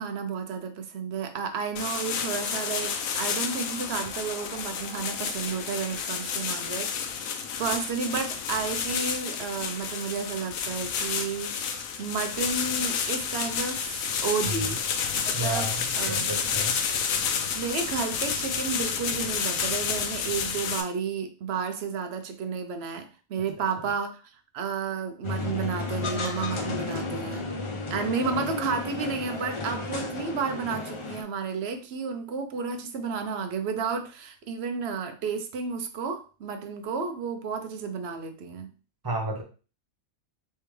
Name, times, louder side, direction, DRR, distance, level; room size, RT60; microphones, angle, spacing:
voice 1, 0.0-14.8 15.1-15.7 16.0-16.4 17.5-27.5 27.9-38.7, right 5 dB, 60° right, 7 dB, 0.7 m, -32 dB
sound 1, 1.8-20.8, left 6 dB, 85° left, 1.0 m, -30 dB
voice 2, 14.4-14.8 15.3-16.8 17.4-17.5 39.0-39.4, right 1 dB, 25° right, 2 dB, 0.5 m, -32 dB
sound 2, 25.2-31.2, left 3 dB, 50° left, 0.3 m, -33 dB
3.4 x 3.4 x 3.2 m, 0.35 s
omnidirectional pair, 1.4 m